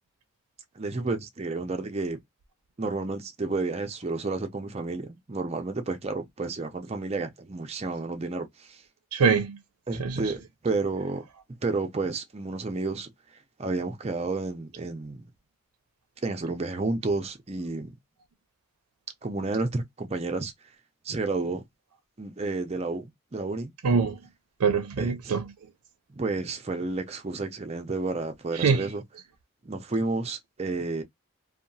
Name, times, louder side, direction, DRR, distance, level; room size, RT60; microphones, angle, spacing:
voice 1, 0.8-2.2 2.8-8.8 9.9-11.2 11.6-13.1 13.6-15.3 16.2-18.0 19.2-20.5 21.0-21.6 22.2-23.7 25.0-25.4 26.1-29.0 29.6-31.0, right 3 dB, 30° right, 0.5 m, -31 dB
voice 2, 9.1-9.6 10.0-10.3 23.8-24.2 24.6-25.4 28.5-28.9, right 5 dB, 85° right, 0.5 m, -24 dB
2.8 x 2.3 x 2.6 m
head